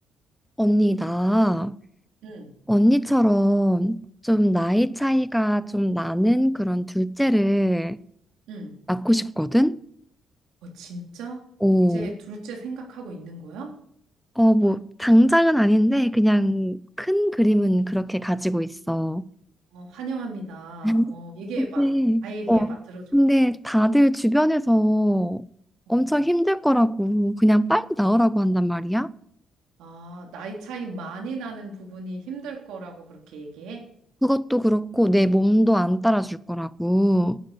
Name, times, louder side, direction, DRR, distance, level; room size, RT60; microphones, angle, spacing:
voice 1, 0.6-1.7 2.7-8.0 8.9-9.8 11.6-12.1 14.4-19.2 20.8-21.0 21.6-22.7 23.1-25.4 25.9-29.1 34.2-37.4, equal, ahead, 0.6 m, -21 dB
voice 2, 2.2-2.5 8.5-8.7 10.6-11.4 11.8-13.7 19.7-21.9 22.2-23.0 25.9-26.1 29.8-33.8, right 3 dB, 90° right, 3.5 m, -36 dB
11.5 x 9.1 x 8.2 m
cardioid pair, 90°, 0 cm